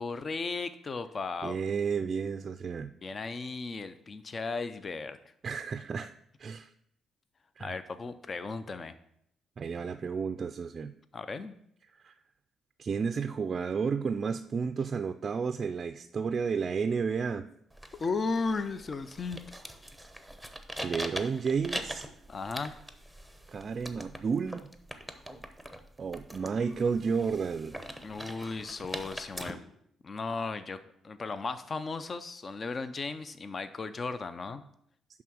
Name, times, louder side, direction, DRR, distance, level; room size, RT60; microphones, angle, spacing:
voice 1, 0.0-1.6 3.0-5.2 7.6-8.9 11.1-11.6 17.9-19.4 22.3-22.7 28.0-29.6 30.0-34.6, left 4 dB, 35° left, 12 dB, 0.5 m, -35 dB
voice 2, 1.4-2.9 5.4-6.1 6.4-6.7 7.6-7.7 9.6-10.9 12.0-12.1 12.8-17.4 20.8-22.1 23.5-24.7 26.0-27.8, right 5 dB, 45° right, 9 dB, 0.4 m, -32 dB
sound 1, 17.7-29.5, right 1 dB, 5° left, 0.9 m, -42 dB
10.5 x 3.6 x 6.2 m, 0.71 s
cardioid pair, 90°, 0 cm